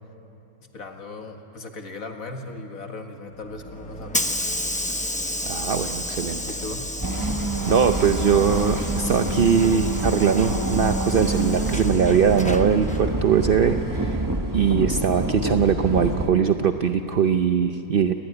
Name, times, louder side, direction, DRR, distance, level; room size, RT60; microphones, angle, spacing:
voice 1, 0.6-4.6 6.4-6.9, left 2 dB, 55° left, 4 dB, 2.2 m, -37 dB
Hiss / Sliding door, 3.4-14.3, left 1 dB, 10° left, 0.3 m, -32 dB
voice 2, 5.5-6.4 7.7-14.2 14.5-18.1, right 7 dB, 60° right, 7 dB, 0.6 m, -21 dB
sound 1, 7.0-16.3, right 1 dB, 15° right, 0.9 m, -26 dB
29.0 x 19.5 x 9.7 m, 3.0 s
omnidirectional pair, 1.8 m